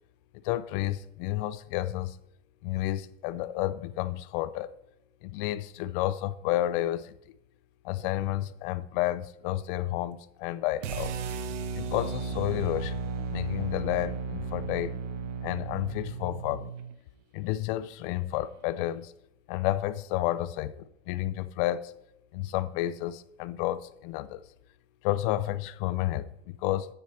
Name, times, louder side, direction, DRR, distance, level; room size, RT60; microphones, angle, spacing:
voice 1, 0.4-2.2 2.6-4.7 5.2-7.2 7.8-11.1 11.7-13.0 13.3-14.9 15.4-16.7 17.3-19.1 19.5-21.9 22.3-24.4 25.0-26.9, left 14 dB, 45° left, 0.5 m, -31 dB
sound 1, 10.8-17.0, right 4 dB, 80° right, 1.0 m, -34 dB
9.4 x 8.2 x 3.3 m
supercardioid pair, 135°, 36 cm